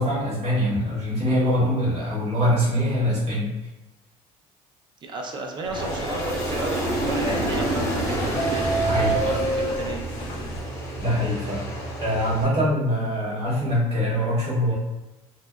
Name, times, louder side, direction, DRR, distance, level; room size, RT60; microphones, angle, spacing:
voice 1, 0.0-3.5 8.8-9.1 11.0-11.7 12.0-14.7, equal, 55° right, -8 dB, 1.4 m, -23 dB
voice 2, 5.0-8.7 9.3-10.0, right 3 dB, 35° right, 2 dB, 0.3 m, -33 dB
sound 1, 5.7-10.6, right 2 dB, 40° left, 0.4 m, -30 dB
Aircraft, 5.7-12.4, right 1 dB, 25° left, 0.8 m, -28 dB
2.6 x 2.1 x 2.3 m, 1.0 s
cardioid pair, 120°, 13 cm